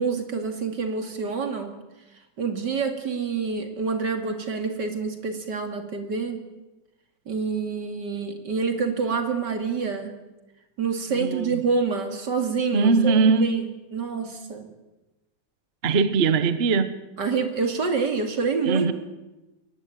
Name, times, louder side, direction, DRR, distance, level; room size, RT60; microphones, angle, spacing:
voice 1, 0.0-1.7 2.4-6.4 7.3-10.1 10.8-13.6 13.9-14.7 17.2-18.9, right 5 dB, 60° right, 5 dB, 3.0 m, -27 dB
voice 2, 11.1-11.6 12.7-13.7 15.8-16.9 18.6-18.9, right 4 dB, 40° right, 12 dB, 1.0 m, -21 dB
22.5 x 18.5 x 9.1 m, 1.1 s
omnidirectional pair, 2.1 m